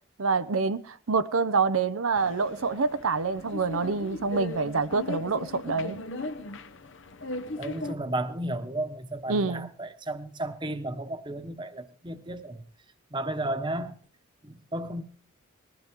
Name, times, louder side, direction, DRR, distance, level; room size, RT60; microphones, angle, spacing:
voice 1, 0.2-6.0 9.3-9.7, right 4 dB, 85° right, 0.7 m, -26 dB
sound 1, 2.1-7.9, left 2 dB, 65° left, 0.8 m, -38 dB
voice 2, 7.6-12.6 13.1-14.0 14.4-15.0, right 1 dB, 20° right, 1.1 m, -33 dB
20.5 x 15.0 x 3.7 m
head